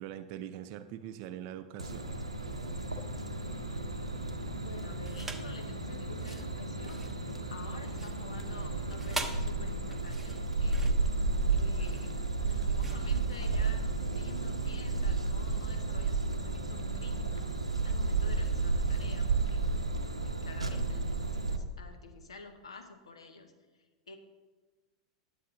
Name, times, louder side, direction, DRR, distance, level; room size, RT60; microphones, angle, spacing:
voice 1, 0.0-2.2, right 10 dB, 45° right, 10 dB, 0.5 m, -42 dB
sound 1, 1.8-21.6, right 3 dB, 85° right, 0.7 m, -32 dB
voice 2, 4.6-7.2 7.5-12.1 12.4-19.6 20.2-24.2, left 4 dB, 75° left, 7 dB, 0.9 m, -49 dB
sound 2, 5.0-5.6 6.1-13.9, right 2 dB, 10° right, 0.8 m, -44 dB
10.0 x 7.6 x 3.9 m, 1.3 s
figure-of-eight pair, 90°, 3 cm